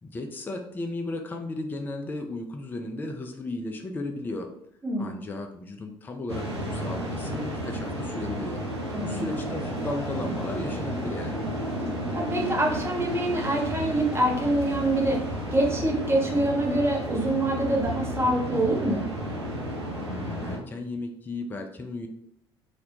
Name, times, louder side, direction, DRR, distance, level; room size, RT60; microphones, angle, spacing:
voice 1, 0.0-4.5 5.0-8.6 9.0-11.4 20.0-22.1, left 2 dB, 15° left, 4 dB, 0.3 m, -35 dB
voice 2, 4.8-5.1 8.9-9.3 12.1-15.2 15.5-19.0, right 1 dB, 20° right, -1 dB, 0.7 m, -25 dB
sound 1, 6.3-20.6, equal, 90° right, 0.4 m, -32 dB
2.3 x 2.0 x 2.8 m, 0.73 s
figure-of-eight pair, 55°, 14 cm